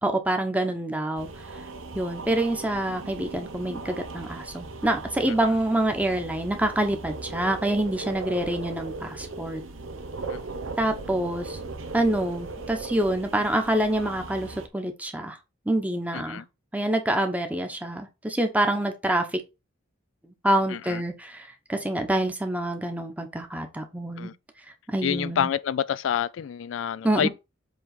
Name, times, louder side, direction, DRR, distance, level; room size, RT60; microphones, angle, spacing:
voice 1, 0.0-1.3 1.9-9.6 10.8-11.6 11.9-15.4 15.7-16.4 16.7-19.3 20.3-24.3 24.9-25.5 27.0-27.3, right 1 dB, 10° right, 1.2 m, -26 dB
sound 1, 1.2-14.7, right 3 dB, 80° right, 0.9 m, -38 dB
voice 2, 16.1-16.4 20.7-21.0 24.2-24.3 25.0-27.3, left 8 dB, 70° left, 0.4 m, -28 dB
7.7 x 3.4 x 5.0 m
head